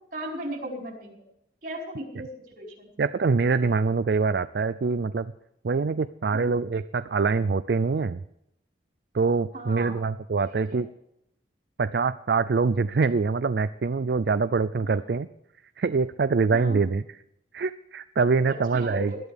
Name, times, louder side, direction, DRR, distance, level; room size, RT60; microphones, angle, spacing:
voice 1, 0.1-1.1 1.6-2.3 2.6-3.1 6.3-6.6 9.5-10.0 10.4-10.8 14.8-15.0 16.5-16.8 18.5-19.2, right 1 dB, 50° right, -1 dB, 4.9 m, -37 dB
voice 2, 3.0-5.3 5.6-8.2 9.1-10.9 11.8-15.3 15.8-17.0 17.5-19.1, right 4 dB, 65° right, 12 dB, 0.4 m, -24 dB
21.0 x 12.5 x 3.5 m, 0.80 s
head